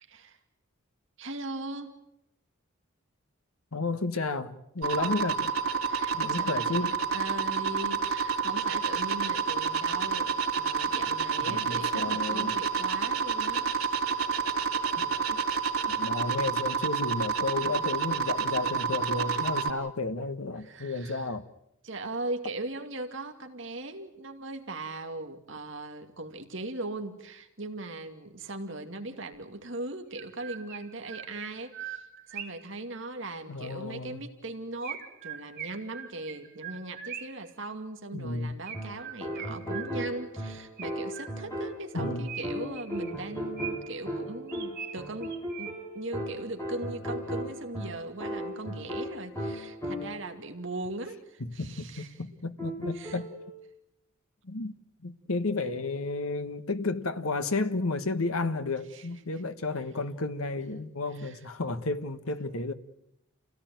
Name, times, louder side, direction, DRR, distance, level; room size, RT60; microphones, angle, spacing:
voice 1, 0.1-0.4 1.2-1.9 4.8-5.0 5.9-6.9 7.1-14.1 19.3-19.4 20.6-21.2 21.8-52.1 52.9-53.2 58.9-59.1 61.2-61.4, right 2 dB, 60° right, 2.4 m, -39 dB
voice 2, 3.7-5.5 6.1-7.0 11.4-12.5 15.0-15.1 15.9-21.5 33.5-34.2 38.1-38.6 41.9-42.3 51.4-53.3 54.4-54.7 55.0-62.7, left 3 dB, 85° left, 1.4 m, -32 dB
sound 1, 4.8-19.7, right 5 dB, 90° right, 3.4 m, -29 dB
Chirp tweet, 29.3-29.4 30.1-32.7 34.8-37.5 38.7-40.2 40.8-41.7 42.3-44.0 44.5-46.0, right 8 dB, 45° right, 2.2 m, -42 dB
sound 2, 38.7-50.4 52.6-53.4, equal, 15° left, 6.4 m, -36 dB
29.0 x 17.0 x 9.3 m
head